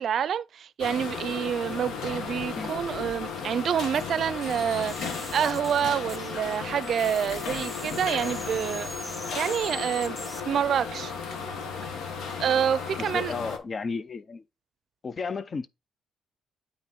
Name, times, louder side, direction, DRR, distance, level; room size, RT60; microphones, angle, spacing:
voice 1, 0.0-8.9 9.3-10.2 10.5-11.1 12.4-13.3, right 8 dB, 60° right, 0.5 m, -27 dB
sound 1, 0.8-13.6, left 5 dB, 75° left, 1.2 m, -35 dB
sound 2, 4.4-6.6 6.8-10.4, equal, 10° left, 1.0 m, -42 dB
voice 2, 13.0-14.4 15.0-15.7, left 4 dB, 40° left, 0.5 m, -33 dB
8.7 x 3.0 x 4.2 m
cardioid pair, 90°, 0 cm